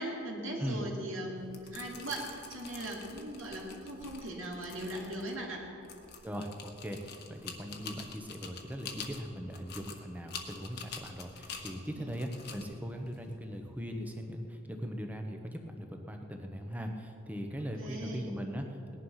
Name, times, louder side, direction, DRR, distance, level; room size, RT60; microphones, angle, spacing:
voice 1, 0.0-5.6 12.0-12.1 17.6-18.3, right 1 dB, 75° right, -2 dB, 2.8 m, -39 dB
sound 1, 1.4-14.1, left 5 dB, 50° left, 1.4 m, -47 dB
voice 2, 6.2-19.0, equal, 5° right, 3 dB, 1.1 m, -40 dB
18.5 x 11.0 x 5.8 m, 2.7 s
head